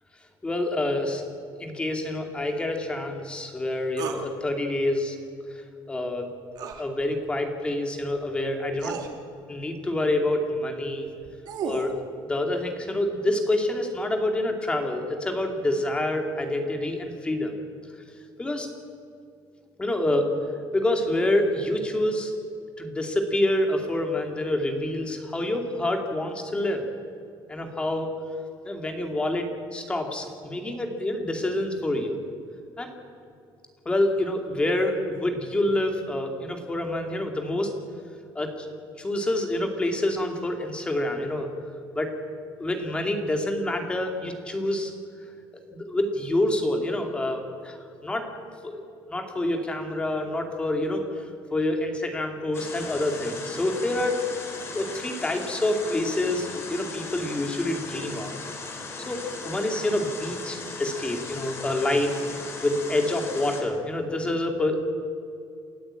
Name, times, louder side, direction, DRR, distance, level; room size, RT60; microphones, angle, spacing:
voice 1, 0.4-1.3 1.6-5.2 5.9-6.3 6.8-9.0 9.5-11.1 11.6-11.9 12.3-17.5 18.4-18.7 19.8-20.3 20.7-22.3 22.8-26.9 27.5-28.1 28.6-32.2 32.8-32.9 33.9-37.7 38.3-38.7 39.0-41.5 41.9-42.1 42.6-44.9 45.7-47.8 48.0-48.3 48.6-48.8 49.1-51.2 51.5-54.3 54.7-58.3 59.1-62.2 62.6-64.8, left 1 dB, 10° left, 4 dB, 2.5 m, -27 dB
sound 1, 4.0-4.2 6.5-6.8 8.2-8.3 8.8-9.1 11.1-11.9, right 6 dB, 55° right, 2.4 m, -33 dB
sound 2, 52.5-63.6, left 3 dB, 30° left, 3.2 m, -38 dB
29.0 x 13.5 x 8.9 m, 2.4 s
cardioid pair, 180°, 9 cm